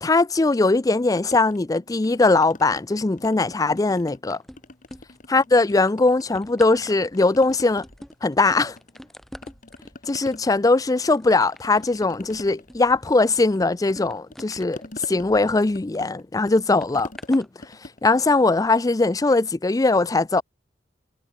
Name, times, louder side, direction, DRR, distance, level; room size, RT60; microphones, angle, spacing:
voice 1, 0.0-4.4 5.3-7.8 8.2-8.8 10.1-14.8 15.1-17.5 18.0-20.4, left 3 dB, 20° left, 0.4 m, -20 dB
sound 1, 1.2-2.8 3.2-4.3 4.6-6.4 6.7-9.1 9.4-19.2, left 2 dB, 45° left, 2.0 m, -44 dB
sound 2, 4.3-5.4 5.7-16.1 16.8-17.5 18.2-18.4, equal, ahead, 1.7 m, -46 dB
head